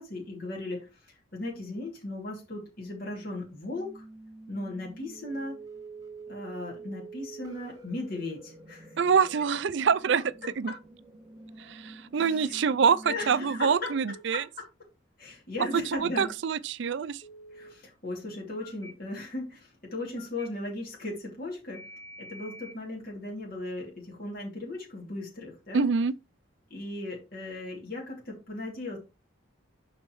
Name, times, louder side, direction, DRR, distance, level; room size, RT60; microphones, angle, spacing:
voice 1, 0.0-4.0 4.5-5.6 6.3-9.0 10.7-10.8 12.1-12.6 13.0-13.9 14.3-14.4 15.2-16.3 17.5-21.9 22.2-25.9 26.7-29.0, left 2 dB, 45° left, 2.7 m, -37 dB
sound 1, 3.7-13.6, right 3 dB, 15° right, 2.5 m, -47 dB
voice 2, 9.0-10.2 10.6-10.7 11.6-14.4 15.7-17.2 25.7-26.1, right 6 dB, 60° right, 0.4 m, -25 dB
Telephone, 13.7-14.2 17.2-17.7 18.6-18.9 20.2-20.5 21.7-22.8, equal, 20° left, 3.5 m, -47 dB
11.5 x 4.2 x 3.1 m
head